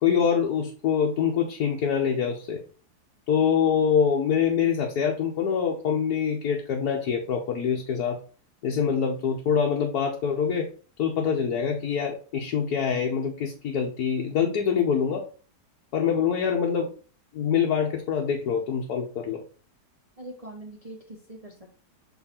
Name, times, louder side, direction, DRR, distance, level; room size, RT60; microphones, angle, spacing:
voice 1, 0.0-2.6 3.3-8.2 8.6-10.7 11.0-15.2 15.9-16.9 17.3-19.4, left 7 dB, 65° left, 0 dB, 1.3 m, -25 dB
voice 2, 20.2-21.7, right 1 dB, 25° right, -1 dB, 1.0 m, -42 dB
7.0 x 3.2 x 4.2 m, 0.37 s
omnidirectional pair, 1.8 m